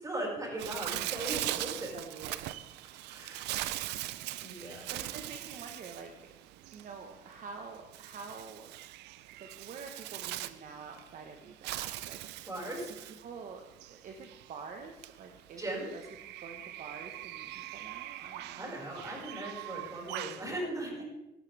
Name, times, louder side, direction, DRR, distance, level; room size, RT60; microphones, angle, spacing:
voice 1, 0.0-1.9 3.1-3.8 4.4-4.9 12.4-13.1 15.6-15.9 18.6-21.0, right 1 dB, 20° right, -2 dB, 5.3 m, -39 dB
Bird, 0.6-20.5, right 15 dB, 85° right, 0.6 m, -41 dB
voice 2, 1.6-2.5 4.5-6.3 6.7-8.7 9.4-12.7 13.2-18.7 21.0-21.1, right 5 dB, 50° right, 4 dB, 1.3 m, -48 dB
17.5 x 11.5 x 3.5 m, 0.96 s
cardioid pair, 110°, 17 cm